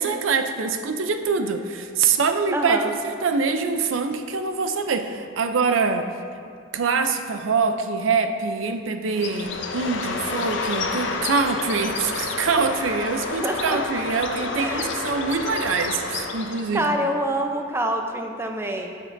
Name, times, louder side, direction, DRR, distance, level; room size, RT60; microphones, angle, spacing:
voice 1, 0.0-6.1 6.7-16.9, right 5 dB, 85° right, 7 dB, 0.5 m, -24 dB
voice 2, 2.5-2.9 13.1-13.8 14.6-14.9 16.7-19.0, right 1 dB, 15° right, 3 dB, 0.5 m, -26 dB
Bird, 9.1-16.8, left 3 dB, 70° left, 0.7 m, -29 dB
13.0 x 6.1 x 2.6 m, 2.3 s
head